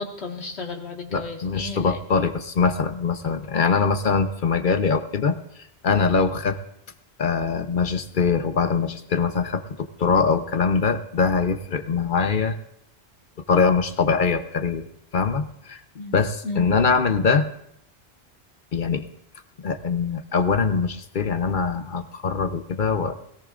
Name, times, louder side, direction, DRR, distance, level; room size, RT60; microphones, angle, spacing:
voice 1, 0.0-2.0 16.0-16.1 16.4-16.6, left 3 dB, 80° left, 0 dB, 1.9 m, -33 dB
voice 2, 1.1-5.4 5.8-6.6 7.2-12.6 13.5-14.9 15.1-15.8 16.1-17.5 18.7-19.0 19.6-23.1, left 5 dB, 55° left, 8 dB, 0.9 m, -22 dB
21.0 x 17.0 x 2.5 m, 0.77 s
omnidirectional pair, 1.1 m